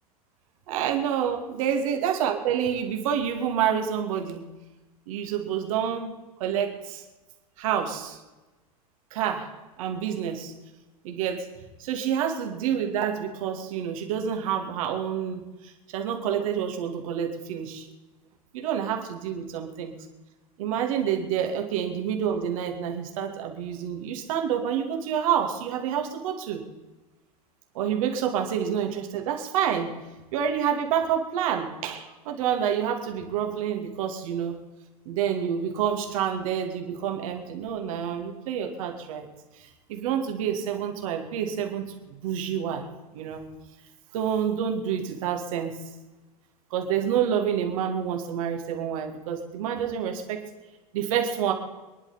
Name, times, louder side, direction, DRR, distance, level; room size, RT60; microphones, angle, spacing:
voice 1, 0.7-4.4 5.1-6.1 6.4-7.0 7.6-8.2 9.1-9.5 9.8-10.5 11.0-11.5 11.8-17.9 18.5-19.9 20.6-26.6 27.7-29.9 30.3-34.6 35.1-39.3 39.5-42.9 43.1-43.4 44.1-45.7 46.7-50.4 50.9-51.5, right 8 dB, 60° right, 3 dB, 2.6 m, -28 dB
24.5 x 11.0 x 4.4 m, 1.1 s
figure-of-eight pair, 85°, 20 cm